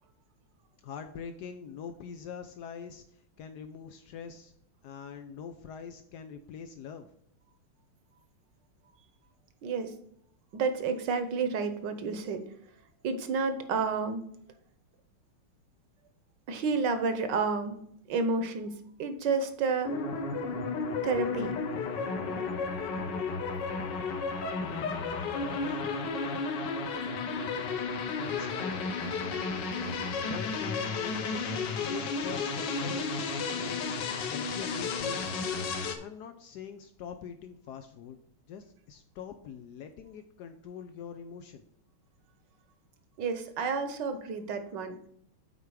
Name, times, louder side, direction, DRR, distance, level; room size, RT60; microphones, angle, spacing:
voice 1, 0.8-4.5 4.8-7.1 25.6-25.9 28.2-28.8 30.2-33.1 33.3-33.9 34.3-35.2 36.0-38.2 38.5-41.6, left 7 dB, 90° left, 8 dB, 0.8 m, -43 dB
voice 2, 9.6-9.9 10.5-12.4 13.0-14.2 16.5-19.9 21.0-21.6 43.2-45.0, right 4 dB, 65° right, 10 dB, 1.3 m, -30 dB
sound 1, 19.8-36.0, left 4 dB, 65° left, 1.4 m, -33 dB
8.0 x 4.7 x 4.8 m, 0.69 s
omnidirectional pair, 2.4 m